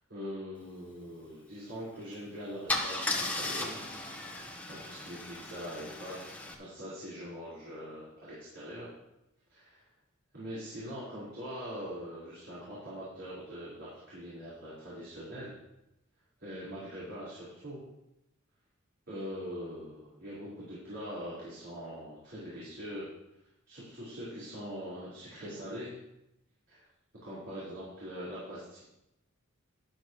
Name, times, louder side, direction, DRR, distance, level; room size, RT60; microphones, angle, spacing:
voice 1, 0.0-3.8 4.7-8.9 9.5-9.8 10.3-15.6 16.4-17.8 19.1-23.1 23.7-25.9 26.7-26.8 27.2-28.8, equal, 60° right, -9 dB, 4.4 m, -42 dB
Car / Engine starting / Idling, 2.0-2.2 2.7-6.5, left 2 dB, 5° left, 1.4 m, -36 dB
12.5 x 11.5 x 3.1 m, 0.88 s
head